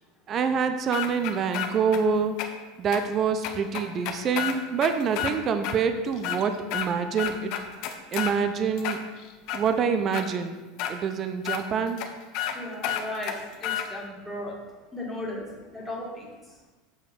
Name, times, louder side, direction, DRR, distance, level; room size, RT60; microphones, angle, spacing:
voice 1, 0.3-2.4 2.8-7.5 8.1-9.0 9.5-10.6 10.9-12.0, right 6 dB, 30° right, 9 dB, 0.5 m, -26 dB
sound 1, 0.9-2.0 2.4-2.5 2.9-3.0 3.4-5.3 5.6-5.8 6.1-6.9 7.2-8.3 8.8-9.6 10.1-10.2 10.8-10.9 11.4-11.6 12.0-12.1 12.3-12.6 12.8-13.9, left 10 dB, 55° left, 0.8 m, -30 dB
voice 2, 12.5-13.3 13.6-14.5 14.9-15.5 15.7-16.2, left 1 dB, ahead, -5 dB, 1.7 m, -35 dB
7.1 x 4.8 x 5.1 m, 1.2 s
supercardioid pair, 140°, 0 cm